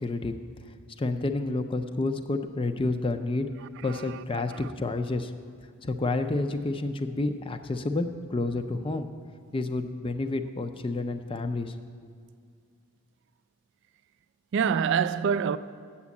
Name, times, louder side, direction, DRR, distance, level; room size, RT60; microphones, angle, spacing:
voice 1, 0.0-0.4 1.0-3.5 3.8-5.3 5.8-9.1 9.5-11.8, left 2 dB, 25° left, 0.4 m, -29 dB
voice 2, 3.8-4.7 14.5-15.6, right 7 dB, 55° right, 0.3 m, -27 dB
7.5 x 7.2 x 8.3 m
head